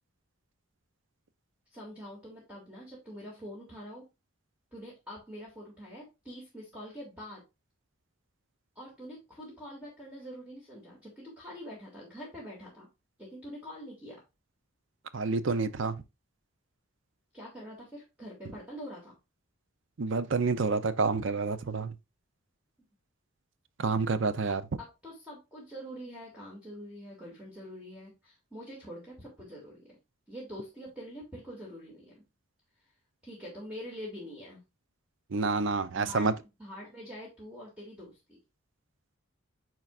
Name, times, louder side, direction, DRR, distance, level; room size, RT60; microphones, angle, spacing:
voice 1, 1.7-4.0 4.7-7.4 8.8-12.9 13.2-14.2 17.3-19.2 24.8-30.0 30.3-32.2 33.2-34.6 35.9-36.3 36.6-38.4, equal, 5° right, 2.2 m, -45 dB
voice 2, 15.1-16.0 20.0-21.9 23.8-24.6 35.3-36.3, right 4 dB, 60° right, 0.6 m, -28 dB
8.8 x 4.7 x 2.4 m
head